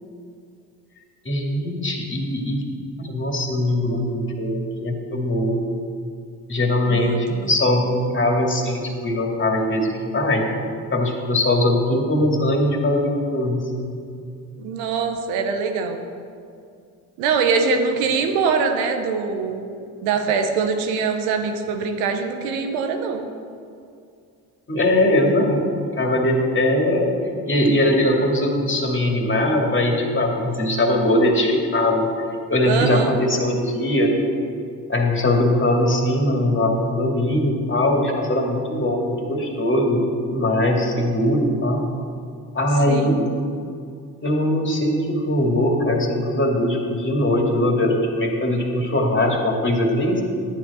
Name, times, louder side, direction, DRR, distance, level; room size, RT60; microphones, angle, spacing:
voice 1, 1.2-5.6 6.5-10.5 10.9-13.9 24.7-25.6 26.0-27.1 27.5-32.1 32.5-34.1 34.9-41.8 42.5-43.2 44.2-50.2, left 1 dB, 30° left, 1 dB, 2.2 m, -21 dB
voice 2, 6.9-7.5 14.6-16.0 17.2-19.6 20.0-23.2 32.6-33.2 42.9-43.2, right 5 dB, 85° right, 6 dB, 1.0 m, -23 dB
10.5 x 8.9 x 4.2 m, 2.4 s
hypercardioid pair, 55°, 41 cm